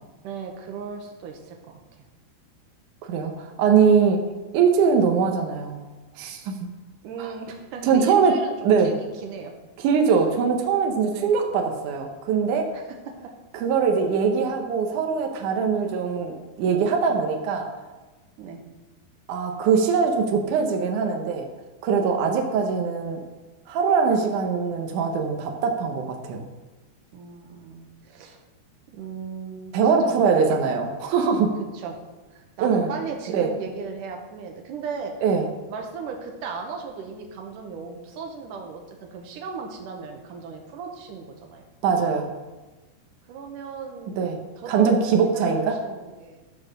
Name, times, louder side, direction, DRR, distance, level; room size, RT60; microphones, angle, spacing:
voice 1, 0.2-1.8 7.0-9.5 11.1-11.3 12.7-13.0 18.4-18.6 22.2-22.8 27.1-28.4 28.9-29.7 30.0-30.9 31.7-32.0 32.3-35.1 35.7-41.6 43.3-46.4, right 5 dB, 70° right, 2 dB, 2.0 m, -36 dB
voice 2, 3.1-4.3 4.5-5.8 6.2-6.6 7.2-7.3 7.8-8.3 8.6-8.9 9.8-12.7 13.5-17.7 19.3-21.5 21.8-23.2 23.7-26.5 29.7-31.5 32.6-32.9 33.3-33.5 35.2-35.5 41.8-42.3 44.2-44.4 44.7-45.8, right 6 dB, 90° right, 3 dB, 1.7 m, -22 dB
12.5 x 4.3 x 6.4 m, 1.2 s
omnidirectional pair, 4.9 m